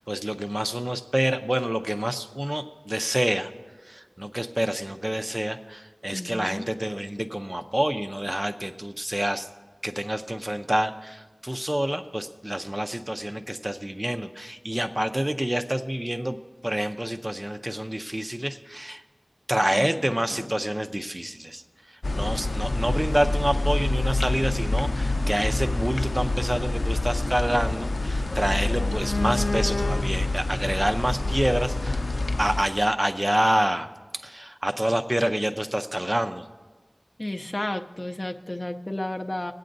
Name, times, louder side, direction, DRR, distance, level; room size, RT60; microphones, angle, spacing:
voice 1, 0.0-3.5 3.8-9.5 9.8-16.4 16.6-19.0 19.5-32.1 32.4-36.5, right 1 dB, 25° right, 8 dB, 0.6 m, -27 dB
voice 2, 6.1-6.7 19.7-20.1 37.2-39.5, left 1 dB, 35° left, 5 dB, 0.5 m, -32 dB
sound 1, 22.0-32.6, left 2 dB, 80° left, 0.4 m, -26 dB
24.0 x 8.5 x 2.6 m, 1.4 s
wide cardioid pair, 55°, 0 cm